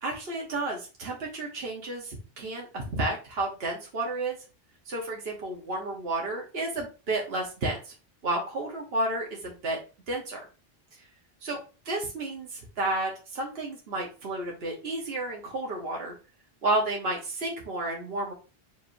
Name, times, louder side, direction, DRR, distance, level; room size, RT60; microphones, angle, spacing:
voice 1, 0.0-4.4 4.9-7.9 8.2-9.8 10.1-10.4 11.4-11.6 11.8-16.1 16.6-18.3, right 2 dB, 75° right, -1 dB, 1.4 m, -31 dB
4.8 x 3.6 x 2.6 m, 0.32 s
omnidirectional pair, 1.0 m